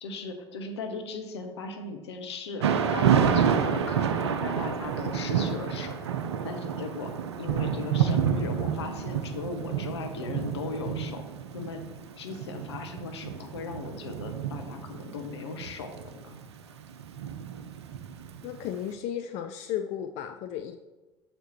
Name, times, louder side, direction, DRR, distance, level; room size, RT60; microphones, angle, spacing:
voice 1, 0.0-5.9 6.4-7.1 7.4-11.2 11.5-11.8 12.2-16.4, left 4 dB, 80° left, 5 dB, 0.8 m, -38 dB
Thunder / Rain, 2.6-18.6, right 8 dB, 80° right, 0.5 m, -29 dB
voice 2, 18.4-20.8, left 10 dB, 55° left, 7 dB, 0.4 m, -34 dB
7.0 x 4.4 x 4.2 m, 1.1 s
figure-of-eight pair, 65°, 14 cm